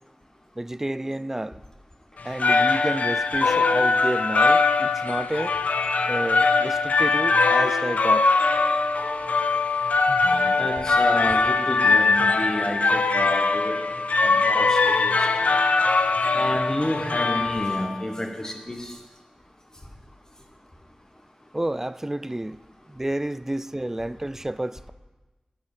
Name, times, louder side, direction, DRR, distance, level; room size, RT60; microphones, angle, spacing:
voice 1, 0.6-1.6 2.2-5.5 6.1-8.3 21.5-22.6 22.9-24.9, right 1 dB, 15° right, 0.3 m, -30 dB
sound 1, 2.2-18.1, left 3 dB, 90° left, 0.5 m, -21 dB
voice 2, 10.1-13.8 14.2-15.2 16.3-18.9, left 1 dB, 25° left, 1.4 m, -30 dB
9.8 x 6.5 x 7.2 m
wide cardioid pair, 60°, 2 cm